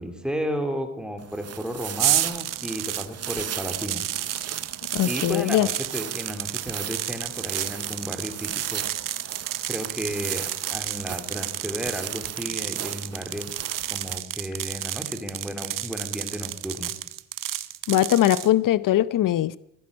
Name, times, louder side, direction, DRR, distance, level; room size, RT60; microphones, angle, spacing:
voice 1, 0.0-4.1 5.0-8.8 9.7-13.5 13.9-16.9, equal, 5° right, 3.2 m, -33 dB
sound 1, 1.2-14.2, right 10 dB, 50° right, 0.8 m, -37 dB
sound 2, 2.0-18.5, right 12 dB, 80° right, 1.1 m, -31 dB
voice 2, 4.9-5.7 17.9-19.6, left 12 dB, 80° left, 0.7 m, -21 dB
20.0 x 16.0 x 9.7 m
wide cardioid pair, 145°, 32 cm